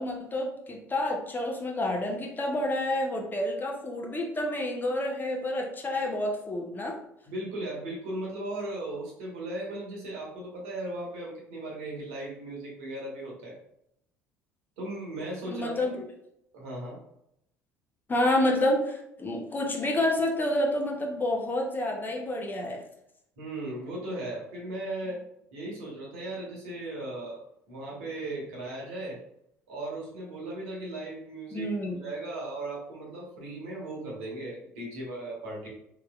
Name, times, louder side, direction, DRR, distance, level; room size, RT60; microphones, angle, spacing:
voice 1, 0.0-7.0 15.5-16.0 18.1-22.8 31.5-32.0, left 1 dB, 25° left, 1 dB, 0.8 m, -29 dB
voice 2, 7.3-13.6 14.8-16.1 16.5-17.0 23.4-25.2 25.5-29.2 29.7-35.7, right 1 dB, 70° right, -3 dB, 1.2 m, -37 dB
3.7 x 3.0 x 2.3 m, 0.76 s
figure-of-eight pair, 60°, 8 cm